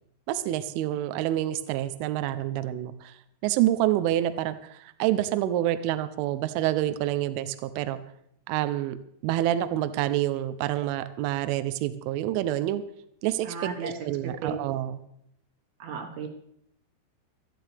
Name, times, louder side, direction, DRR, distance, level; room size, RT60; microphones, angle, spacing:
voice 1, 0.3-3.1 3.4-8.0 8.5-9.0 9.2-12.8 13.2-15.0, right 13 dB, 85° right, 11 dB, 3.2 m, -27 dB
voice 2, 13.5-13.9 14.4-14.6 15.8-16.3, right 5 dB, 65° right, 3 dB, 2.9 m, -34 dB
18.5 x 13.5 x 3.4 m, 0.72 s
omnidirectional pair, 5.5 m